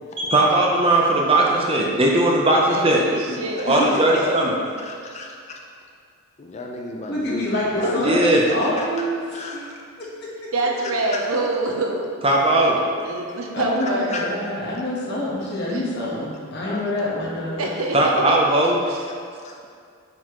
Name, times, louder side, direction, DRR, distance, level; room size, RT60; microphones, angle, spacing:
voice 1, 0.2-3.0 3.3-3.4 3.7-4.5 8.0-8.4 12.2-12.8 17.9-18.8, right 2 dB, 25° right, -1 dB, 0.7 m, -18 dB
voice 2, 2.5-4.5 7.8-7.9 10.5-12.1 13.0-14.3 15.7-15.8 17.6-18.3 18.8-19.0, right 2 dB, 80° right, 0 dB, 0.8 m, -26 dB
voice 3, 3.7-4.4 7.1-10.1 13.5-17.6, left 1 dB, 50° left, -5 dB, 1.3 m, -27 dB
voice 4, 4.8-5.6 6.4-7.5 7.8-8.0 8.4-8.9 9.3-9.6 11.1-11.3 13.8-14.2 16.6-16.8 17.1-17.2 17.5-17.8 19.4-19.5, left 2 dB, 30° left, 0 dB, 0.5 m, -34 dB
7.9 x 4.4 x 3.0 m, 2.2 s
head